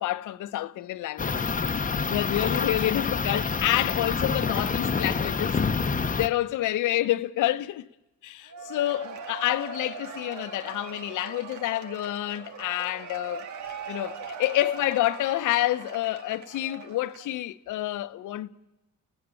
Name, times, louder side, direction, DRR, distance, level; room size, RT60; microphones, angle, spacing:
voice 1, 0.0-1.7 2.1-5.6 6.1-7.9 8.2-13.5 13.9-18.5, left 14 dB, 85° left, 1.0 m, -28 dB
sound 1, 1.2-6.3, left 5 dB, 25° left, 1.0 m, -27 dB
Cheering / Applause / Crowd, 8.5-17.4, right 5 dB, 70° right, 1.9 m, -41 dB
30.0 x 17.0 x 9.0 m
cardioid pair, 90°, 30 cm